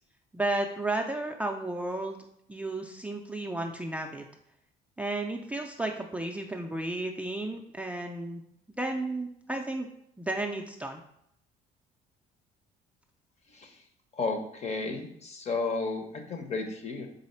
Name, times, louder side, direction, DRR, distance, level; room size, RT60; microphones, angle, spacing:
voice 1, 0.3-2.2 2.5-4.2 5.0-8.4 8.8-9.9 10.2-11.0, right 2 dB, 10° right, 2 dB, 0.3 m, -33 dB
voice 2, 13.5-13.8 14.1-17.1, left 3 dB, 40° left, 4 dB, 0.8 m, -33 dB
4.1 x 3.1 x 4.2 m, 0.75 s
cardioid pair, 110°, 17 cm